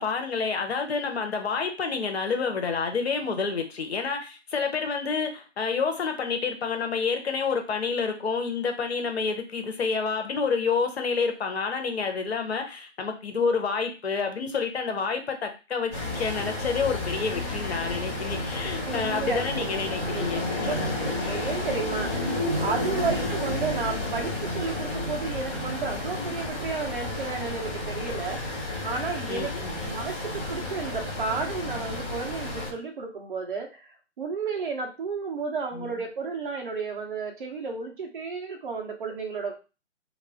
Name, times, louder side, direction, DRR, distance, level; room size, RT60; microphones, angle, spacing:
voice 1, 0.0-21.0 23.1-23.3 29.3-29.8 35.7-35.9, left 5 dB, 60° left, 5 dB, 0.7 m, -29 dB
sound 1, 15.9-32.7, left 2 dB, 15° left, 0.7 m, -31 dB
voice 2, 18.8-19.6 20.0-20.8 21.2-29.5 29.8-39.5, right 5 dB, 45° right, 2 dB, 0.8 m, -32 dB
2.4 x 2.1 x 3.3 m, 0.31 s
figure-of-eight pair, 150°, 37 cm